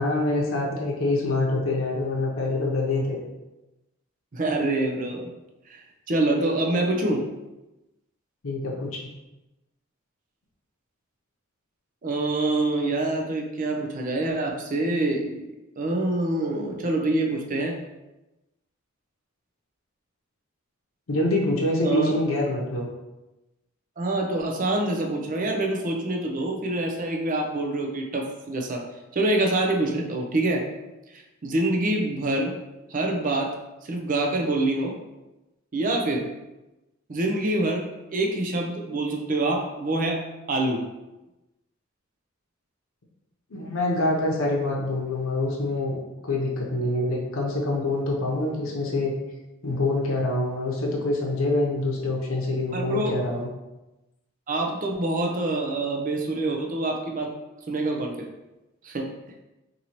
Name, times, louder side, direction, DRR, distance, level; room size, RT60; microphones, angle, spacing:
voice 1, 0.0-3.2 8.4-9.0 21.1-22.9 43.5-46.0 46.2-49.1 49.6-53.5, left 2 dB, 85° left, -3 dB, 0.7 m, -25 dB
voice 2, 4.3-5.3 5.7-5.8 6.1-7.3 12.0-17.7 21.8-22.1 24.0-28.8 29.1-30.7 31.1-32.5 32.9-33.5 33.9-34.9 35.7-36.3 37.1-40.8 52.7-53.1 54.5-57.3 57.7-58.3 58.8-59.1, right 2 dB, 40° right, 1 dB, 0.5 m, -26 dB
4.1 x 2.7 x 2.9 m, 1.0 s
head